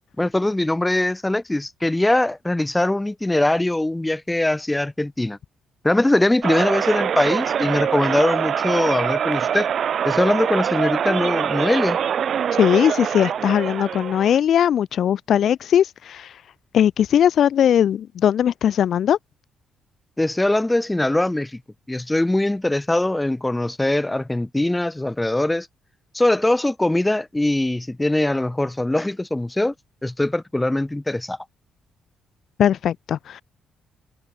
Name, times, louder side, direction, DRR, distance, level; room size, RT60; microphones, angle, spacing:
voice 1, 0.2-5.4 5.8-9.7 10.0-12.0 20.2-21.6 21.9-25.7 26.1-29.7 30.0-31.4, left 1 dB, 15° left, 2.5 m, -21 dB
sound 1, 6.4-14.4, right 8 dB, 60° right, 6.3 m, -24 dB
voice 2, 12.6-16.3 16.7-19.2 32.6-33.4, left 9 dB, 65° left, 1.2 m, -19 dB
supercardioid pair, 60°, 0 cm